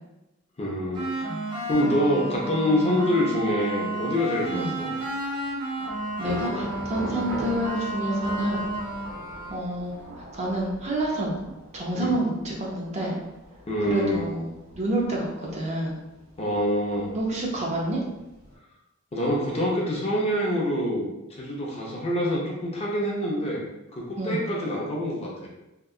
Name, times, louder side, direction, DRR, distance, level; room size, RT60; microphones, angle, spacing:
voice 1, 0.6-1.1 1.6-4.9 7.1-7.2 11.9-12.1 13.7-14.2 16.4-17.1 19.1-23.6 23.9-25.5, equal, 30° left, -3 dB, 0.5 m, -26 dB
sound 1, 0.9-9.7, right 1 dB, 50° right, 0.9 m, -32 dB
voice 2, 1.2-1.5 4.5-4.8 5.8-5.9 6.2-8.6 9.5-9.9 10.3-13.2 13.9-16.0 17.1-18.0 24.2-24.5, right 1 dB, 35° right, -2 dB, 0.5 m, -28 dB
Thunder / Rain, 5.0-18.6, equal, 75° right, 1.3 m, -42 dB
2.8 x 2.2 x 2.3 m, 0.94 s
head